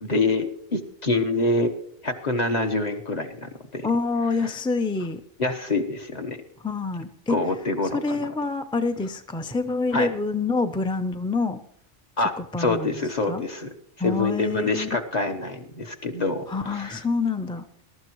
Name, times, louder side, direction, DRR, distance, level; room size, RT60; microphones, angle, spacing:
voice 1, 0.0-1.7 2.0-3.9 4.4-4.5 5.4-6.4 7.3-8.2 9.9-10.1 12.2-12.3 12.6-13.7 14.0-17.0, left 2 dB, 40° left, 4 dB, 1.2 m, -26 dB
voice 2, 3.8-5.2 6.6-7.4 7.9-11.6 12.4-13.0 13.3-13.4 14.0-14.9 16.5-17.6, left 3 dB, 10° left, 7 dB, 0.3 m, -26 dB
21.5 x 12.0 x 3.1 m, 0.66 s
omnidirectional pair, 1.2 m